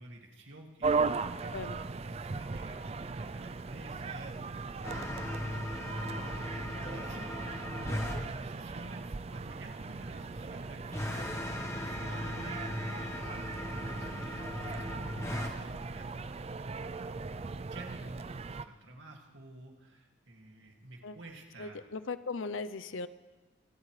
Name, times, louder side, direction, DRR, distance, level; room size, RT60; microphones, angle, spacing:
voice 1, 0.0-1.5 1.8-5.7 6.8-12.7 13.6-16.5 16.9-21.9, right 1 dB, 65° right, 1 dB, 2.3 m, -51 dB
sound 1, 0.8-18.7, right 4 dB, 30° right, 0.4 m, -38 dB
sound 2, 4.8-8.2 10.9-15.5, left 1 dB, 15° left, 1.2 m, -38 dB
voice 2, 21.6-23.1, left 4 dB, 70° left, 14 dB, 0.6 m, -38 dB
26.5 x 12.5 x 3.3 m, 1.2 s
head